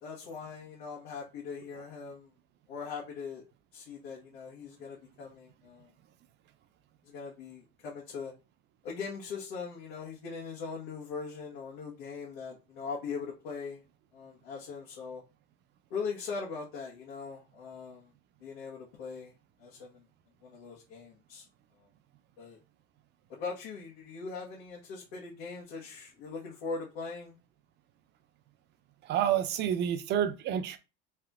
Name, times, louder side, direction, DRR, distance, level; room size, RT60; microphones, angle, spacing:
voice 1, 0.0-2.3 2.7-3.4 3.7-5.9 7.0-8.3 8.8-13.8 14.1-15.2 15.9-18.1 18.4-19.3 19.6-20.0 20.4-21.4 22.4-22.6 23.3-27.3, left 5 dB, 85° left, 1.5 m, -40 dB
voice 2, 29.1-30.8, right 10 dB, 35° right, 0.6 m, -29 dB
3.5 x 2.8 x 3.6 m
cardioid pair, 150°, 29 cm